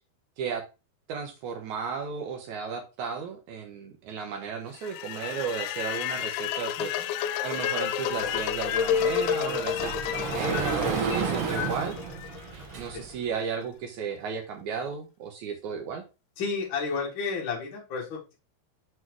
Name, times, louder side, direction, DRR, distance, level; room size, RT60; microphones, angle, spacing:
voice 1, 1.1-11.9 12.7-16.0, right 6 dB, 75° right, 3 dB, 1.8 m, -34 dB
sound 1, 4.8-12.9, left 9 dB, 80° left, 2.4 m, -30 dB
Sliding door, 8.2-13.2, right 5 dB, 90° right, 1.2 m, -32 dB
voice 2, 16.4-18.3, left 4 dB, 60° left, -3 dB, 1.3 m, -32 dB
6.2 x 4.2 x 4.6 m, 0.28 s
omnidirectional pair, 4.7 m